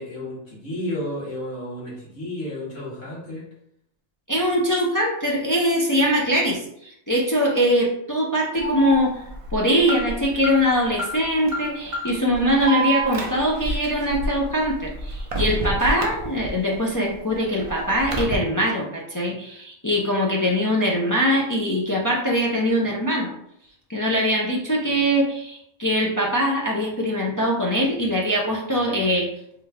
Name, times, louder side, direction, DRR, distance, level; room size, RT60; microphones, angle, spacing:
voice 1, 0.0-3.4, left 1 dB, 65° left, -6 dB, 2.1 m, -32 dB
voice 2, 4.3-9.2 9.5-23.3 23.9-29.3, equal, 30° left, -2 dB, 0.3 m, -22 dB
Alarm, 8.6-16.7 17.1-18.3, right 2 dB, 40° right, 0.5 m, -29 dB
3.7 x 3.3 x 3.5 m, 0.71 s
omnidirectional pair, 1.4 m